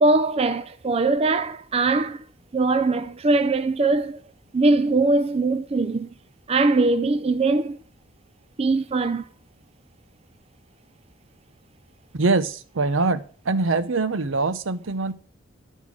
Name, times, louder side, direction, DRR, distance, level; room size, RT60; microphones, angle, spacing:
voice 1, 0.0-2.2 2.5-4.2 4.5-6.1 6.5-7.8 8.6-9.2, right 3 dB, 30° right, 0.4 m, -21 dB
voice 2, 12.1-15.1, right 3 dB, 75° right, 0.7 m, -23 dB
11.5 x 5.5 x 6.2 m
head